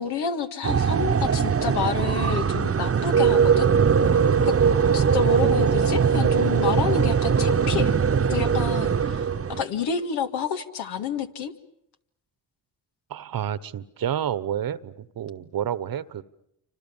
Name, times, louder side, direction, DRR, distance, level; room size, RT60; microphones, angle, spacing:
voice 1, 0.0-3.7 4.5-4.6 4.9-7.9 8.3-11.5, left 6 dB, 80° left, 6 dB, 2.1 m, -29 dB
sound 1, 0.6-9.6, right 6 dB, 35° right, 1.1 m, -21 dB
voice 2, 13.1-16.2, right 10 dB, 65° right, 17 dB, 1.3 m, -29 dB
28.0 x 25.5 x 7.3 m, 0.78 s
supercardioid pair, 55°, 39 cm